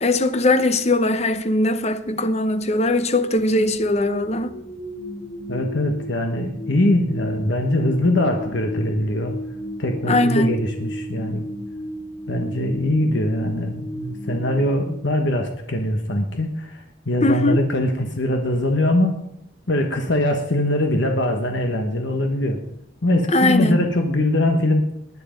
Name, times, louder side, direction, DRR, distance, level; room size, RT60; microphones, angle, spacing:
voice 1, 0.0-4.6 10.1-10.5 17.2-17.6 23.3-23.8, left 2 dB, 30° left, 0.8 m, -20 dB
sound 1, 3.3-15.5, left 1 dB, 90° left, 7.0 m, -34 dB
voice 2, 5.5-9.4 9.8-11.5 12.3-19.2 19.7-22.6 23.0-24.9, left 1 dB, 60° left, 1.3 m, -22 dB
19.5 x 9.6 x 5.2 m
head